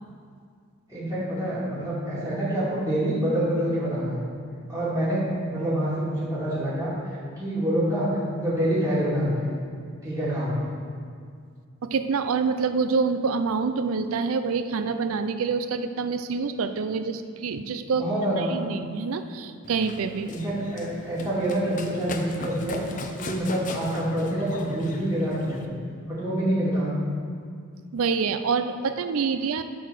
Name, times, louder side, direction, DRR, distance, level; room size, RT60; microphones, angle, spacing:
voice 1, 0.9-4.2 4.7-9.5 10.0-10.6 17.9-18.6 20.3-22.8 23.1-25.7 26.1-26.9, right 1 dB, 15° right, -9 dB, 2.5 m, -26 dB
voice 2, 11.8-18.1 18.4-20.3 27.9-29.6, right 5 dB, 80° right, 9 dB, 0.4 m, -26 dB
Run, 19.6-25.7, left 2 dB, 35° left, 0.5 m, -39 dB
11.0 x 4.1 x 6.4 m, 2.2 s
head